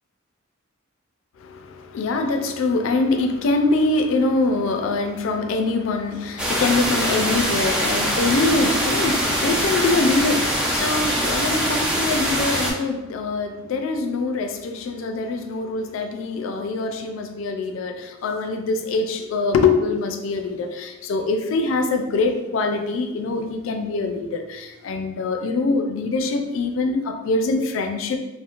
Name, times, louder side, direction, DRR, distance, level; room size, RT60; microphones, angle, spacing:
voice 1, 1.4-28.2, left 3 dB, 75° left, 5 dB, 0.3 m, -24 dB
sound 1, 6.4-12.7, equal, 5° right, 0.4 m, -23 dB
2.4 x 2.0 x 2.8 m, 1.0 s
head